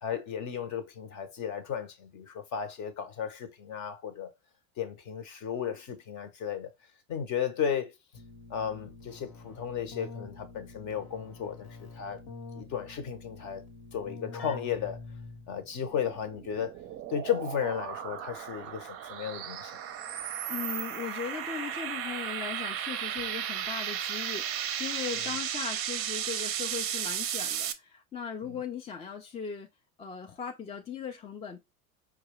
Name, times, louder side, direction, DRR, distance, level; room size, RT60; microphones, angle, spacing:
voice 1, 0.0-4.3 4.8-6.7 7.1-8.0 8.5-12.2 12.5-13.6 13.9-15.0 15.5-16.8 17.1-19.7 25.2-25.3 28.4-28.6, left 8 dB, 45° left, 0.9 m, -34 dB
Keyboard (musical), 8.1-15.7, left 3 dB, 65° left, 1.3 m, -46 dB
sound 1, 15.7-27.7, right 10 dB, 35° right, 0.6 m, -35 dB
voice 2, 20.5-29.7 30.0-31.6, left 7 dB, 15° left, 0.4 m, -38 dB
4.6 x 2.4 x 3.0 m
hypercardioid pair, 95°, 42 cm